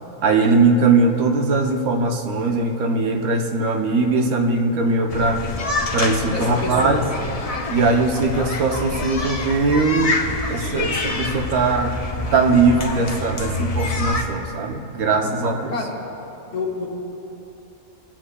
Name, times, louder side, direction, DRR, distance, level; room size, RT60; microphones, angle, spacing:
voice 1, 0.2-5.4 5.9-7.0 7.7-10.2 10.5-12.0 12.3-15.7, right 3 dB, 80° right, 3 dB, 1.2 m, -20 dB
sound 1, 5.1-14.2, left 3 dB, 60° left, 0.3 m, -27 dB
voice 2, 6.3-7.0 15.1-15.3 15.7-15.9 16.5-16.9, left 3 dB, 40° left, -2 dB, 1.4 m, -28 dB
21.0 x 7.5 x 2.2 m, 3.0 s
omnidirectional pair, 1.5 m